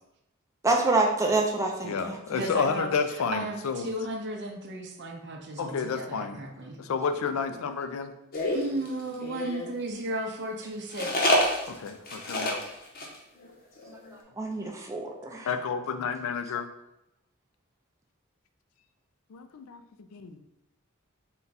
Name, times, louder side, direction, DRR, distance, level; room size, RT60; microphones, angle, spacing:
voice 1, 0.6-2.5 14.4-15.5, right 2 dB, 15° right, 1 dB, 0.5 m, -27 dB
voice 2, 1.8-3.9 5.6-6.4 6.8-8.1 11.7-12.6 15.5-16.7 19.3-20.4, left 5 dB, 80° left, 9 dB, 0.4 m, -31 dB
voice 3, 2.3-2.9 3.3-6.8 8.5-11.4, right 1 dB, 55° right, 2 dB, 0.6 m, -34 dB
sound 1, 8.3-9.7 10.9-12.7 13.0-13.2 13.4-13.5 13.8-14.1, left 1 dB, 45° left, 0.7 m, -27 dB
3.9 x 2.3 x 3.9 m, 0.87 s
head